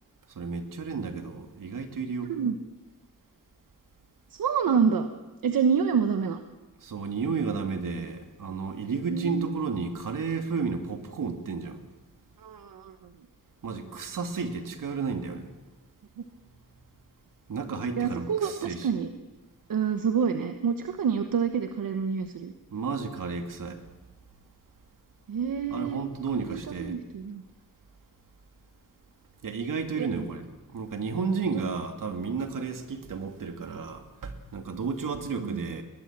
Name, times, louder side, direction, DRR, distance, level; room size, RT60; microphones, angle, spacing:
voice 1, 0.3-2.3 6.8-11.8 13.6-15.5 17.5-18.9 22.7-23.8 25.7-27.0 29.4-30.4 30.7-35.8, right 5 dB, 70° right, 5 dB, 2.6 m, -32 dB
voice 2, 4.3-5.1 5.4-6.4 9.1-9.5 12.4-12.9 18.0-19.1 19.7-22.5 25.3-26.0 26.3-27.4 30.0-30.2 35.4-35.7, right 6 dB, 90° right, 7 dB, 1.2 m, -27 dB
22.5 x 20.0 x 7.4 m, 1.1 s
wide cardioid pair, 100°, 33 cm